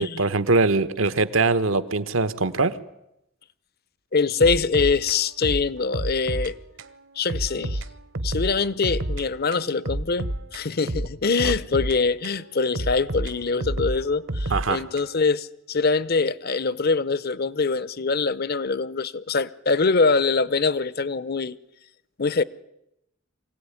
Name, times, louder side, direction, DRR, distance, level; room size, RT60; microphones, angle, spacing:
voice 1, 0.0-2.8 11.4-11.5 14.5-14.8, right 3 dB, 85° right, 1.2 m, -22 dB
voice 2, 4.1-6.6 7.2-7.8 8.2-21.6 22.2-22.4, left 4 dB, 50° left, 0.8 m, -24 dB
sound 1, 4.4-6.5 6.8-6.9 7.3-9.3 9.5-12.4 12.8-15.3, right 1 dB, 65° right, 1.2 m, -30 dB
24.5 x 17.0 x 9.8 m
head